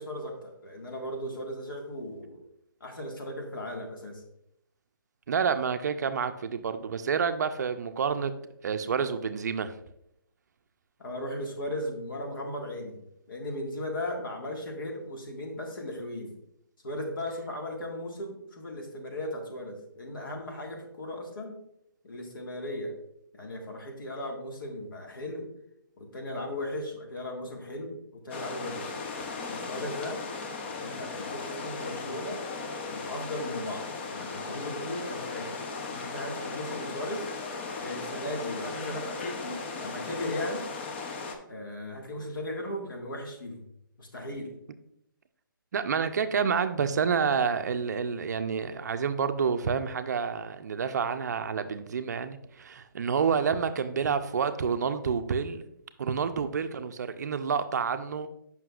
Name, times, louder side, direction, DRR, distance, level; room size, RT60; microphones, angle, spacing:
voice 1, 0.0-2.4 2.8-4.2 11.0-13.0 13.3-16.3 16.8-21.6 22.0-23.0 23.3-25.5 26.0-29.0 29.5-30.2 30.7-32.4 32.9-35.6 35.9-37.3 37.8-40.7 41.5-43.7 44.0-44.6, left 1 dB, 70° left, 1 dB, 1.7 m, -37 dB
voice 2, 5.3-8.3 8.6-9.7 45.7-55.6 56.0-58.3, right 6 dB, 50° right, 9 dB, 0.4 m, -28 dB
sound 1, 28.3-41.4, left 4 dB, 30° left, 0.6 m, -37 dB
7.5 x 5.7 x 2.4 m, 0.77 s
hypercardioid pair, 160°, 12 cm